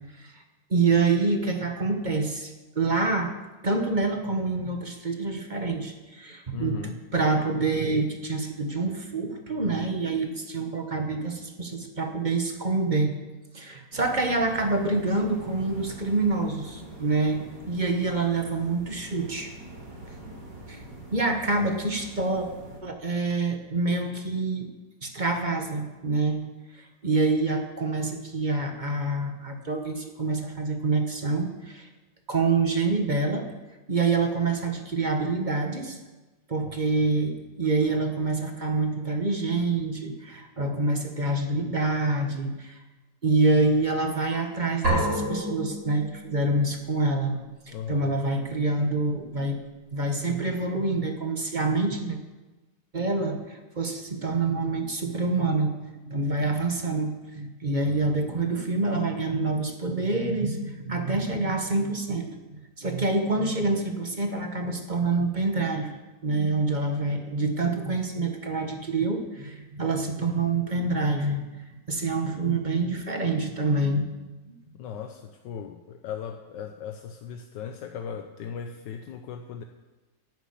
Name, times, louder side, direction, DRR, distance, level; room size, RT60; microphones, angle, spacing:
voice 1, 0.7-3.3 3.6-13.1 13.5-19.5 20.7-20.8 21.1-22.5 22.8-24.7 25.0-26.4 26.7-31.9 32.3-33.5 33.9-36.0 36.5-42.8 43.2-47.4 47.7-49.6 49.9-52.2 52.9-71.6 71.9-74.1, right 3 dB, 30° right, 4 dB, 1.3 m, -26 dB
voice 2, 6.5-6.9 21.6-21.7 36.6-37.0 47.7-48.1 57.8-58.0 74.7-79.6, left 7 dB, 80° left, 5 dB, 1.5 m, -38 dB
sound 1, 13.9-22.8, right 1 dB, 80° right, 4.1 m, -44 dB
sound 2, 44.8-46.7, equal, 65° right, 5.8 m, -28 dB
11.0 x 9.1 x 8.6 m, 1.1 s
omnidirectional pair, 1.9 m